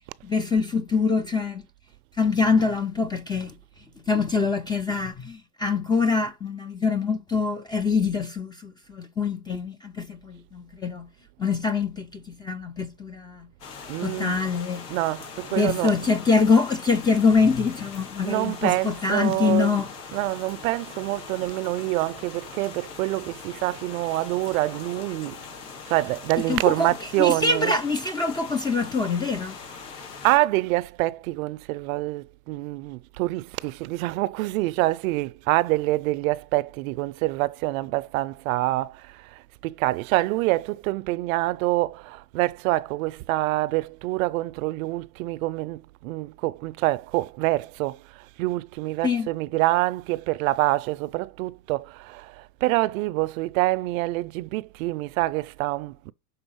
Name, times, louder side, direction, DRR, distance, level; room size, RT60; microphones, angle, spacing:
voice 1, 0.2-1.6 2.2-3.5 4.1-11.1 11.4-13.5 14.0-14.8 15.5-19.9 26.5-26.9 27.2-29.6 49.0-49.3, left 4 dB, 10° left, 0.4 m, -24 dB
sound 1, 13.6-30.4, left 5 dB, 75° left, 3.0 m, -41 dB
voice 2, 13.9-14.4 14.9-16.1 18.2-25.4 25.9-27.8 30.2-56.1, right 19 dB, 60° right, 0.5 m, -26 dB
6.2 x 3.9 x 5.5 m
supercardioid pair, 120°, 48 cm